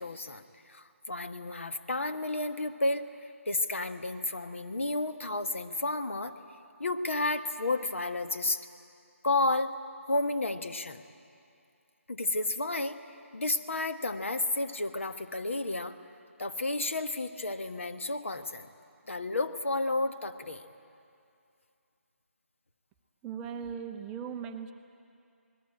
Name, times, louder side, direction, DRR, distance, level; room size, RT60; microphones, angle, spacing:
voice 1, 0.0-6.3 6.8-8.6 9.2-9.7 10.1-11.0 12.1-13.0 13.3-16.0 16.4-18.7 19.1-20.6, left 2 dB, 60° left, 9 dB, 1.4 m, -31 dB
voice 2, 23.2-24.7, right 7 dB, 10° right, 6 dB, 0.5 m, -38 dB
28.0 x 20.0 x 9.0 m, 2.5 s
figure-of-eight pair, 150°, 8 cm